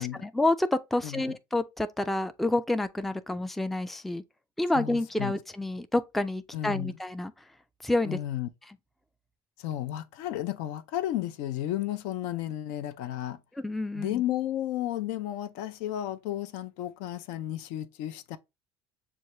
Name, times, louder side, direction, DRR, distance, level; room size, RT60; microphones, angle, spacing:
voice 1, 0.0-4.2 4.6-7.3 7.8-8.2 13.6-14.2, left 2 dB, ahead, 0.3 m, -29 dB
voice 2, 4.7-5.3 6.5-7.0 8.0-8.5 9.6-13.4 13.9-18.4, left 13 dB, 70° left, 0.4 m, -33 dB
6.1 x 2.3 x 2.9 m
hypercardioid pair, 80°, 13 cm